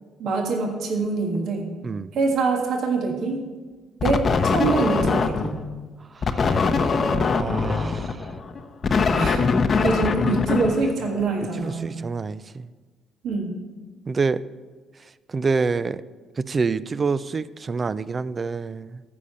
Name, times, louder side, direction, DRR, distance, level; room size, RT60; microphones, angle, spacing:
voice 1, 0.2-1.7 2.1-3.4 4.0-5.6 9.2-9.5 9.8-11.9 13.2-13.5, right 3 dB, 65° right, 2 dB, 1.6 m, -24 dB
sound 1, 4.0-5.6 6.2-11.3, left 4 dB, 45° left, 0.8 m, -22 dB
voice 2, 6.3-6.8 7.3-8.3 11.6-12.7 14.1-14.4 15.3-16.0 16.4-19.0, right 4 dB, 40° right, 16 dB, 0.5 m, -27 dB
13.5 x 5.1 x 6.9 m, 1.4 s
hypercardioid pair, 60°, 0 cm